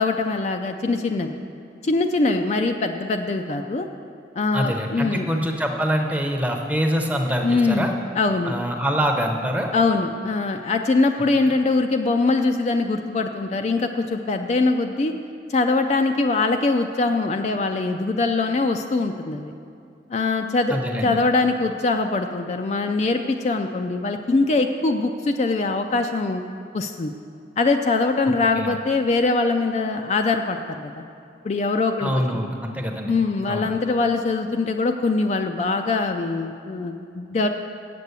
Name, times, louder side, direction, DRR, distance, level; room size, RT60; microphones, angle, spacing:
voice 1, 0.0-1.4 1.8-3.9 4.4-5.3 7.4-8.5 9.7-15.1 15.5-19.5 20.1-26.4 26.7-27.1 27.6-31.0 31.4-32.1 33.1-37.5, left 3 dB, 35° left, 5 dB, 0.3 m, -22 dB
voice 2, 4.5-7.9 8.5-9.7 20.7-21.2 28.6-28.8 32.0-33.2 33.5-33.7, equal, 10° right, 2 dB, 0.7 m, -24 dB
8.2 x 6.8 x 8.1 m, 2.5 s
head